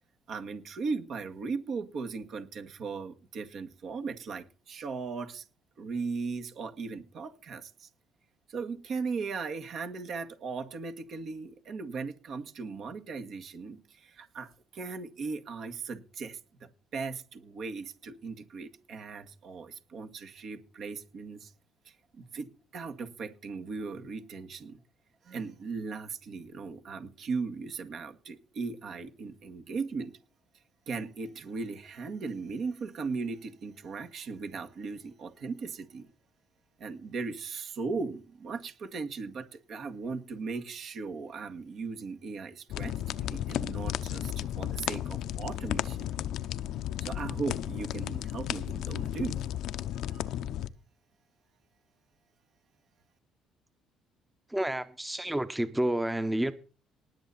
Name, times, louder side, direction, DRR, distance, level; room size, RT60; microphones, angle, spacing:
voice 1, 0.3-5.5 5.8-7.9 8.5-21.5 21.9-24.8 25.2-30.2 30.9-36.1 36.8-46.1 47.0-49.4 49.9-50.3, right 4 dB, 60° right, 1.9 m, -38 dB
sound 1, 42.7-50.7, left 12 dB, 70° left, 0.7 m, -34 dB
voice 2, 54.5-56.5, right 1 dB, 10° right, 0.9 m, -30 dB
19.0 x 7.3 x 4.1 m
hypercardioid pair, 60°, 0 cm